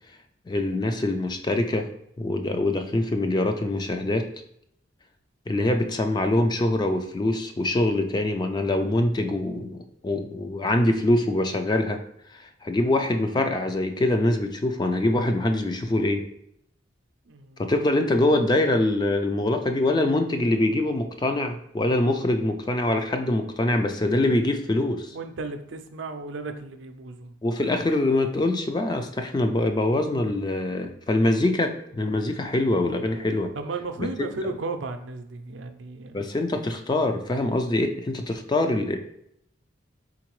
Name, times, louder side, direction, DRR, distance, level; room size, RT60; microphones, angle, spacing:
voice 1, 0.5-1.9 2.2-4.3 5.5-12.0 12.3-16.2 17.6-25.2 27.4-33.5 34.0-34.1 36.1-39.0, left 1 dB, 20° left, 6 dB, 0.3 m, -24 dB
voice 2, 17.3-17.6 25.1-27.3 33.6-36.2, right 3 dB, 70° right, 7 dB, 0.5 m, -34 dB
4.3 x 3.8 x 3.0 m, 0.74 s
head